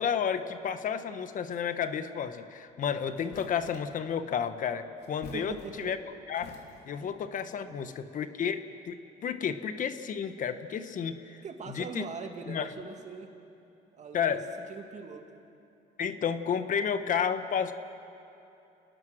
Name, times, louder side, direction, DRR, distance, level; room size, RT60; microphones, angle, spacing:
voice 1, 0.0-6.0 6.3-6.6 6.9-8.6 8.8-9.0 9.2-11.4 11.7-12.0 12.5-12.7 14.1-14.4 16.0-17.7, left 7 dB, 50° left, 10 dB, 1.2 m, -31 dB
sound 1, 2.7-2.8 3.2-4.0 5.0-6.0 6.3-7.1, left 5 dB, 90° left, 2.5 m, -49 dB
voice 2, 5.3-5.9 6.9-7.1 7.6-7.9 11.4-13.3 13.9-14.4 14.7-15.4, right 5 dB, 45° right, 4 dB, 2.3 m, -42 dB
28.5 x 19.0 x 6.3 m, 2.8 s
cardioid pair, 110°, 17 cm